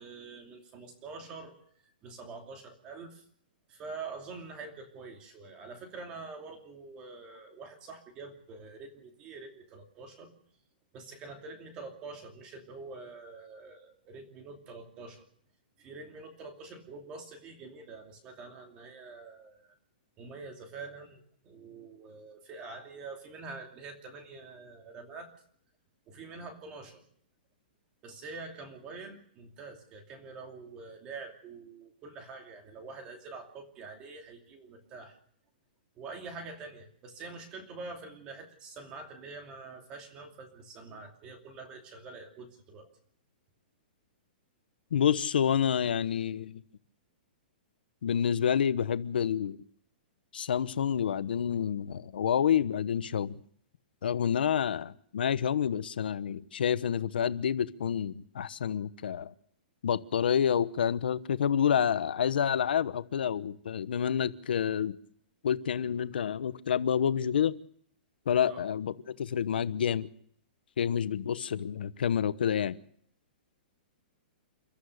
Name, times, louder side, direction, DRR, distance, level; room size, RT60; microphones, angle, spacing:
voice 1, 0.0-1.6 1.8-3.2 3.7-10.4 10.9-15.2 15.8-19.7 20.2-25.3 26.1-27.0 28.0-35.2 36.0-42.9 68.5-68.6, right 4 dB, 15° right, 4 dB, 2.7 m, -46 dB
voice 2, 44.9-46.6 48.0-49.6 50.3-53.4 54.0-59.3 59.8-65.0 65.4-67.5 68.3-70.1 70.8-72.7, left 8 dB, 75° left, 14 dB, 1.0 m, -28 dB
30.0 x 13.5 x 6.5 m, 0.63 s
hypercardioid pair, 180°, 5 cm